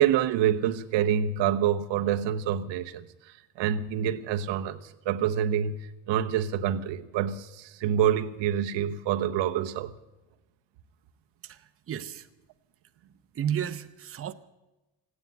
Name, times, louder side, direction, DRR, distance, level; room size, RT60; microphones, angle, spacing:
voice 1, 0.0-3.0 3.6-9.9, right 10 dB, 90° right, 1.0 m, -26 dB
voice 2, 11.4-12.3 13.3-14.3, right 9 dB, 30° right, 0.8 m, -33 dB
16.0 x 9.8 x 9.2 m
cardioid pair, 145°, 43 cm